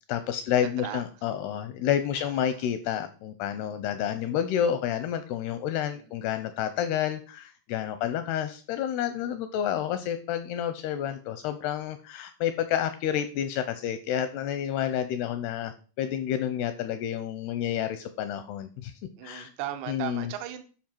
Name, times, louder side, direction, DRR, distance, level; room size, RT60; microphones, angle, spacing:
voice 1, 0.1-18.9 19.2-19.5 19.9-20.3, left 10 dB, 85° left, 10 dB, 2.4 m, -29 dB
voice 2, 0.8-1.2 2.2-2.7 5.9-6.2 7.8-7.9 19.2-20.6, right 12 dB, 80° right, 8 dB, 3.1 m, -38 dB
12.0 x 5.6 x 4.5 m, 0.38 s
omnidirectional pair, 5.2 m